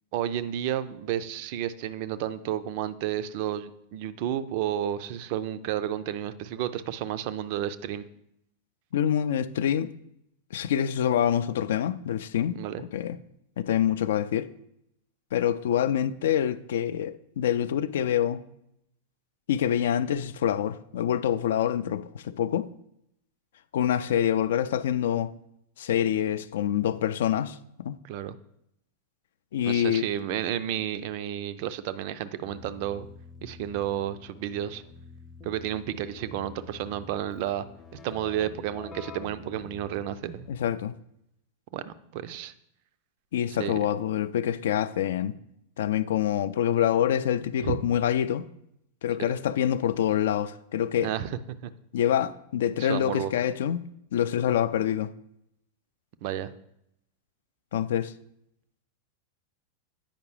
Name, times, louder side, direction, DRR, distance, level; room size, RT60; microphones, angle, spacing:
voice 1, 0.1-8.1 12.5-12.8 28.0-28.4 29.6-33.1 33.4-34.8 35.4-37.6 38.0-40.5 41.7-42.5 43.5-43.9 47.6-47.8 51.0-51.3 51.6-51.7 52.8-53.3 56.2-56.5, right 11 dB, 45° right, 0.4 m, -31 dB
voice 2, 8.9-9.9 10.5-13.2 13.6-14.5 15.3-18.4 19.5-22.7 23.7-25.3 25.8-28.0 29.5-30.0 40.5-40.9 43.3-45.3 45.8-48.5 49.0-51.1 51.9-53.8 54.1-55.1 57.7-58.1, left 10 dB, 60° left, 0.3 m, -26 dB
Keyboard (musical), 32.4-40.8, left 4 dB, 20° left, 0.6 m, -48 dB
8.7 x 5.1 x 3.1 m
figure-of-eight pair, 90°, 0 cm